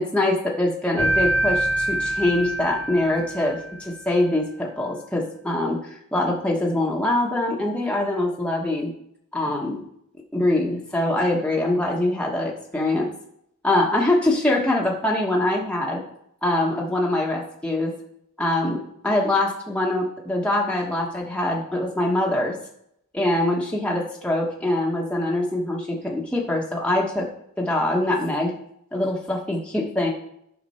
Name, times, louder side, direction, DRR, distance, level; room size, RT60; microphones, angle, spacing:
voice 1, 0.0-5.8 6.1-8.9 9.3-9.8 10.3-13.1 13.6-16.0 16.4-17.9 18.4-22.5 23.1-27.3 27.6-28.5 28.9-30.1, left 1 dB, 5° left, -3 dB, 1.3 m, -23 dB
sound 1, 1.0-3.9, right 1 dB, 55° right, 1.1 m, -25 dB
9.4 x 5.9 x 4.3 m, 0.74 s
head